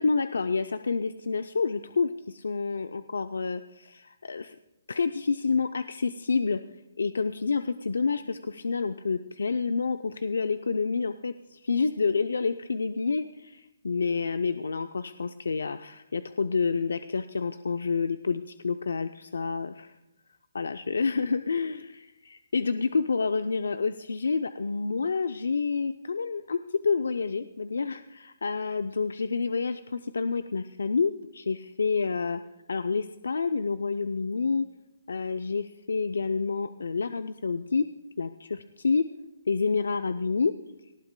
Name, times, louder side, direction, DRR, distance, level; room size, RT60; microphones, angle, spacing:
voice 1, 0.0-4.6 4.9-6.6 7.0-19.9 20.5-32.4 32.7-34.7 35.1-37.9 38.2-39.1 39.5-40.5, left 4 dB, 90° left, 10 dB, 0.5 m, -28 dB
18.5 x 14.0 x 2.2 m, 0.92 s
hypercardioid pair, 165°, 0 cm